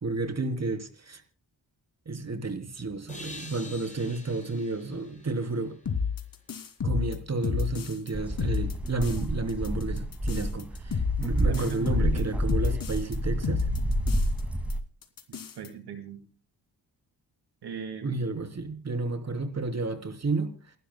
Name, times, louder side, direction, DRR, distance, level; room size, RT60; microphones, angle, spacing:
voice 1, 0.0-1.2 2.1-5.8 6.8-13.7 18.0-20.7, right 3 dB, 40° right, 3.4 m, -31 dB
sound 1, 3.1-6.6, left 2 dB, 20° left, 8.0 m, -47 dB
sound 2, 5.9-8.1 8.4-9.2 9.5-13.1 13.4-14.4 14.7-14.8 15.0-15.7, left 6 dB, 55° left, 2.8 m, -30 dB
sound 3, 8.1-14.8, equal, 5° right, 2.3 m, -29 dB
voice 2, 11.5-12.3 15.3-16.2 17.6-18.3, right 7 dB, 80° right, 2.5 m, -38 dB
28.5 x 12.5 x 2.2 m
cardioid pair, 80°, 40 cm